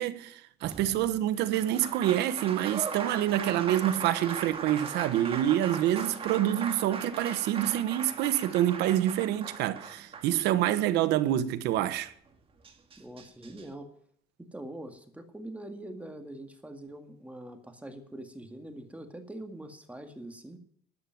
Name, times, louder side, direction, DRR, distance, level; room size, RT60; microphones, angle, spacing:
voice 1, 0.0-12.1, right 12 dB, 85° right, 1.2 m, -27 dB
Applause, 0.6-10.9 12.3-12.4 12.6-13.7, right 5 dB, 35° right, 2.2 m, -39 dB
voice 2, 13.0-13.9 14.4-20.6, right 1 dB, 10° right, 1.9 m, -43 dB
12.5 x 8.7 x 9.2 m
cardioid pair, 110°, 17 cm